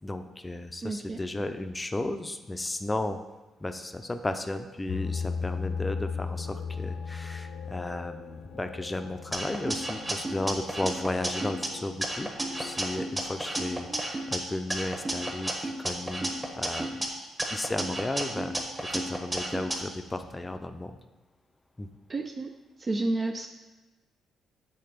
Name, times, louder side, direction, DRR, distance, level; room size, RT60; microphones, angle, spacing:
voice 1, 0.0-3.2 3.6-12.3 12.6-16.3 16.6-17.1 17.5-18.6 18.9-21.0 21.8-21.9, left 2 dB, 15° left, 8 dB, 0.5 m, -34 dB
voice 2, 0.8-1.2 13.6-14.0 22.1-22.5 22.8-23.5, right 2 dB, 35° right, 4 dB, 0.4 m, -31 dB
sound 1, 4.9-12.8, left 5 dB, 85° left, 0.5 m, -37 dB
sound 2, 9.3-11.7 12.0-14.4 14.7-17.1 17.4-19.8, right 1 dB, 15° right, 1.2 m, -32 dB
7.8 x 3.7 x 5.1 m, 1.1 s
cardioid pair, 90°, 0 cm